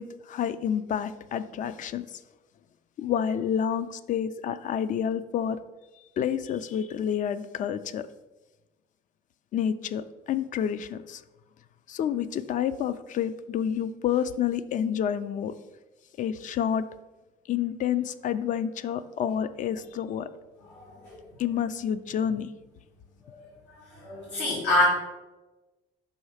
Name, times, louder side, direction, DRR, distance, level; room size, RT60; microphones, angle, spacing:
voice 1, 0.0-2.1 3.0-5.6 6.2-8.1 9.5-11.2 11.9-15.5 16.2-16.9 17.5-20.3 21.4-22.5, left 9 dB, 50° left, 14 dB, 0.4 m, -29 dB
voice 2, 20.7-21.2 23.3-23.4 23.9-24.8, left 2 dB, 85° left, -6 dB, 1.7 m, -27 dB
5.6 x 4.2 x 4.8 m, 1.1 s
cardioid pair, 110°, 17 cm